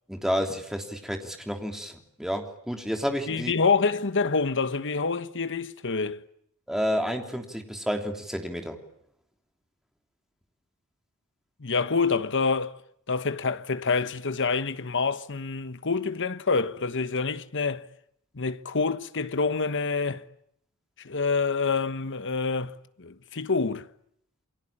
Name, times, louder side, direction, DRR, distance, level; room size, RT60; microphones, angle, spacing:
voice 1, 0.1-3.5 6.7-8.8, equal, ahead, 3.4 m, -30 dB
voice 2, 3.3-6.2 11.6-12.8 13.1-17.9 18.3-20.2 21.0-23.9, left 4 dB, 55° left, 1.3 m, -27 dB
29.0 x 23.0 x 8.8 m
head